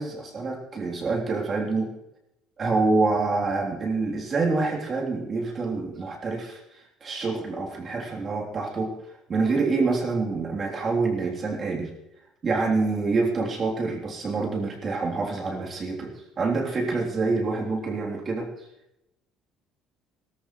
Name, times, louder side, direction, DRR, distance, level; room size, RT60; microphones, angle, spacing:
voice 1, 0.0-1.9 2.6-6.6 7.0-8.9 9.3-11.9 12.4-18.5, right 3 dB, 30° right, -2 dB, 3.4 m, -26 dB
22.5 x 13.5 x 3.2 m, 0.87 s
cardioid pair, 140°, 0 cm